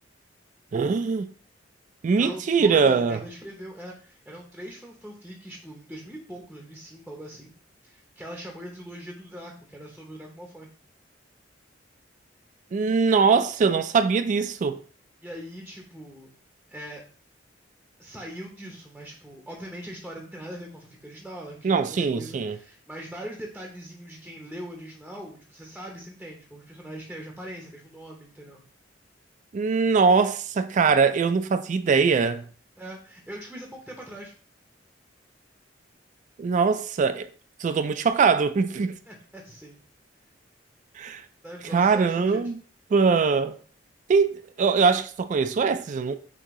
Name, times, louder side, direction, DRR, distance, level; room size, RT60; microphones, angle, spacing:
voice 1, 0.7-1.3 2.0-3.2 12.7-14.8 21.6-22.6 29.5-32.4 36.4-37.3 37.6-38.9 41.0-41.2 41.7-42.6 42.9-43.6 44.1-46.1, right 5 dB, 40° right, 0.3 m, -22 dB
voice 2, 2.2-7.5 7.8-10.7 15.2-16.3 16.7-17.0 18.0-28.6 32.8-34.3 39.1-39.8 41.4-42.4, equal, 5° right, 0.7 m, -41 dB
6.0 x 2.8 x 3.0 m
head